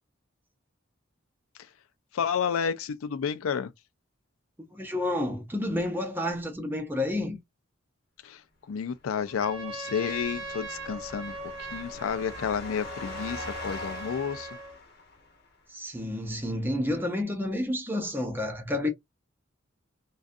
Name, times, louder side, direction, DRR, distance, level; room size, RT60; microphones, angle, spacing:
voice 1, 2.1-3.7 8.2-8.4 8.7-11.3 11.6-14.6, left 7 dB, 90° left, 0.4 m, -31 dB
voice 2, 4.7-7.4 15.7-18.9, left 1 dB, 10° right, 0.6 m, -30 dB
sound 1, 9.2-15.5, left 3 dB, 50° left, 0.8 m, -43 dB
Trumpet, 9.3-14.8, right 3 dB, 70° right, 0.7 m, -40 dB
2.5 x 2.3 x 2.5 m
head